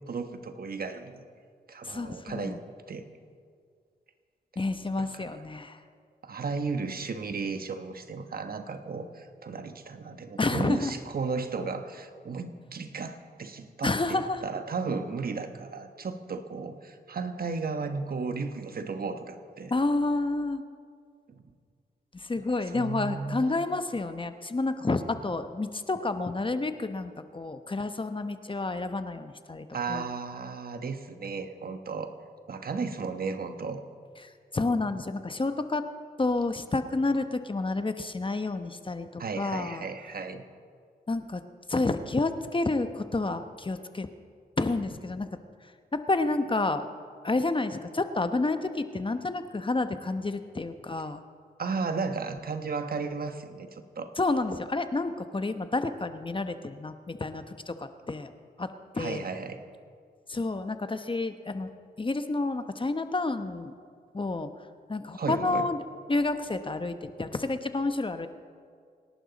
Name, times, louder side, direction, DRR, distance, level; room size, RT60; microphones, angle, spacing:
voice 1, 0.1-1.2 1.7-2.6 2.9-3.1 5.0-5.3 6.2-19.7 21.3-21.4 22.6-23.7 29.7-32.1 32.5-33.8 39.2-40.4 47.3-47.4 51.6-54.1 59.0-59.6 65.1-65.7, right 4 dB, 60° right, 8 dB, 1.2 m, -34 dB
voice 2, 1.8-2.6 4.6-5.8 10.4-10.9 13.8-14.4 19.7-20.6 22.2-30.0 34.5-35.8 36.2-39.9 41.1-41.4 41.7-44.1 44.6-45.3 45.9-46.9 47.2-51.2 54.2-58.3 58.6-58.7 58.9-59.2 60.3-61.7 62.0-63.7 64.1-64.5 64.9-65.8 66.1-68.3, left 3 dB, 30° left, 9 dB, 0.9 m, -29 dB
26.5 x 11.5 x 4.1 m, 2.1 s
cardioid pair, 65°, 17 cm